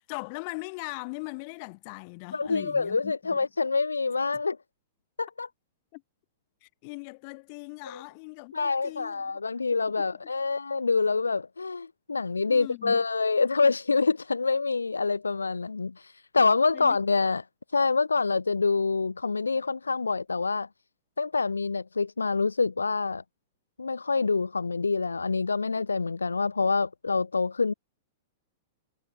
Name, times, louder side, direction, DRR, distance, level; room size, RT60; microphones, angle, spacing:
voice 1, 0.0-3.5 5.9-6.0 6.6-9.4 9.9-10.0 12.5-13.0 16.7-17.0, left 32 dB, 45° left, 4.3 m, -40 dB
voice 2, 2.3-4.6 5.2-5.5 8.5-17.4 17.7-20.7 21.2-23.2 23.8-27.7, left 4 dB, 85° left, 0.5 m, -26 dB
figure-of-eight pair, 100°, 0 cm